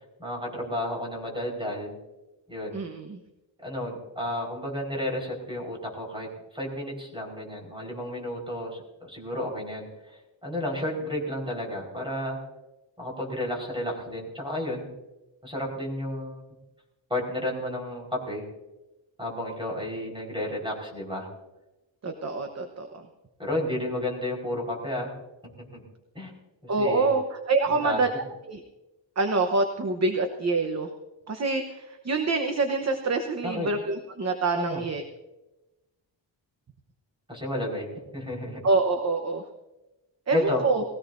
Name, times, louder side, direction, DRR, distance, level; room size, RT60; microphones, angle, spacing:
voice 1, 0.2-1.9 2.5-2.8 3.6-12.4 13.0-14.9 15.4-16.4 17.1-18.4 19.2-21.3 23.4-25.1 25.6-25.8 26.1-26.3 26.6-27.1 27.7-28.0 33.4-33.7 34.5-34.8 37.3-38.6 40.3-40.7, left 1 dB, 10° right, -1 dB, 4.6 m, -32 dB
voice 2, 2.7-3.2 22.0-23.1 26.7-28.1 28.5-28.6 29.2-30.9 31.3-35.0 38.6-39.4 40.3-40.8, right 3 dB, 35° right, 5 dB, 1.0 m, -26 dB
19.5 x 16.5 x 2.6 m, 0.99 s
wide cardioid pair, 155°, 45 cm